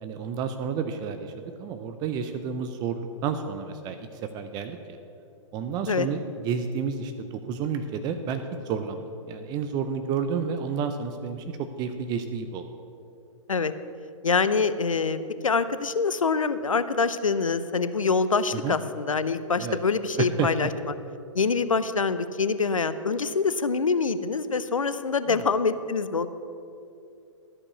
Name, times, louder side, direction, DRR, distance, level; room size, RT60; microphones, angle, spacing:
voice 1, 0.0-5.0 5.5-12.7 18.5-18.8 19.6-19.8 20.2-20.7 25.3-25.4, right 6 dB, 25° right, 8 dB, 0.5 m, -31 dB
voice 2, 14.2-20.7 21.3-26.3, left 4 dB, 90° left, 13 dB, 0.6 m, -25 dB
13.0 x 5.4 x 7.0 m, 2.6 s
figure-of-eight pair, 120°, 17 cm